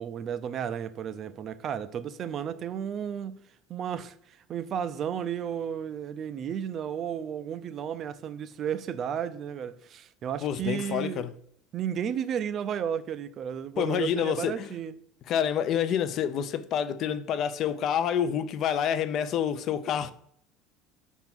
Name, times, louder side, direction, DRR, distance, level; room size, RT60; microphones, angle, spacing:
voice 1, 0.0-3.4 3.7-11.3 11.7-14.9, right 8 dB, 40° right, 0.5 m, -33 dB
voice 2, 10.4-11.3 13.8-14.7 15.3-20.1, left 9 dB, 45° left, 0.5 m, -28 dB
5.8 x 3.7 x 5.9 m
cardioid pair, 130°, 0 cm